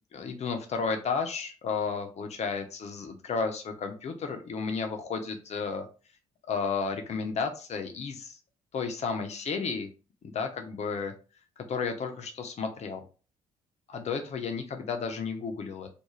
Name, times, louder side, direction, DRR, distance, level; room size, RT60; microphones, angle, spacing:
voice 1, 0.1-5.9 6.5-8.4 8.7-9.9 10.2-11.1 11.7-13.0 13.9-15.9, left 5 dB, 35° left, 5 dB, 0.6 m, -32 dB
2.4 x 2.2 x 3.1 m, 0.35 s
figure-of-eight pair, 45°, 19 cm